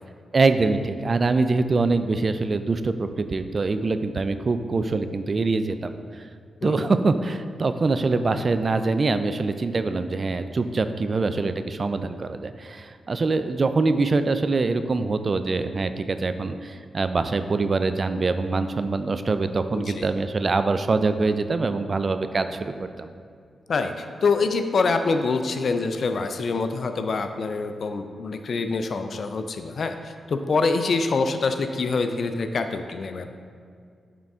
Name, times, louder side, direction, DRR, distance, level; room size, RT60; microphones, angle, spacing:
voice 1, 0.3-6.3 6.6-23.1, right 3 dB, 50° right, 10 dB, 0.4 m, -24 dB
voice 2, 6.6-7.0 19.7-20.1 23.7-33.3, left 4 dB, 65° left, 8 dB, 0.4 m, -25 dB
8.7 x 3.8 x 3.5 m, 2.2 s
supercardioid pair, 45°, 0 cm